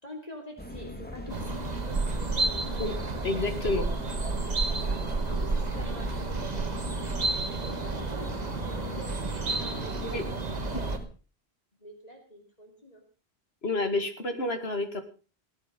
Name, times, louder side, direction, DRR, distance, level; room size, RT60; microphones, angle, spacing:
voice 1, 0.0-2.8 4.7-5.0 5.3-7.3 7.7-10.2 11.8-13.0, equal, 35° left, 2 dB, 3.3 m, -46 dB
sound 1, 0.6-11.1, left 1 dB, 10° left, 2.3 m, -40 dB
sound 2, 1.3-11.0, right 3 dB, 40° right, 1.5 m, -31 dB
voice 2, 3.2-3.9 10.1-10.2 10.7-10.8 13.6-15.0, left 2 dB, 70° left, 6 dB, 2.4 m, -29 dB
20.0 x 9.1 x 5.3 m, 0.36 s
omnidirectional pair, 1.1 m